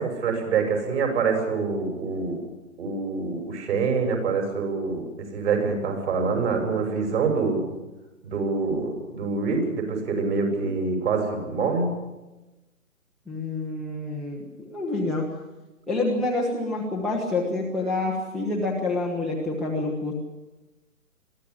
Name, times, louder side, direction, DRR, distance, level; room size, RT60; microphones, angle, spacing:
voice 1, 0.0-2.4 2.8-5.0 5.3-7.6 8.2-11.9, right 4 dB, 50° right, 4 dB, 7.0 m, -25 dB
voice 2, 13.3-15.3 15.9-20.2, left 2 dB, ahead, -1 dB, 0.8 m, -27 dB
22.5 x 15.0 x 8.6 m, 1.1 s
figure-of-eight pair, 140°, 44 cm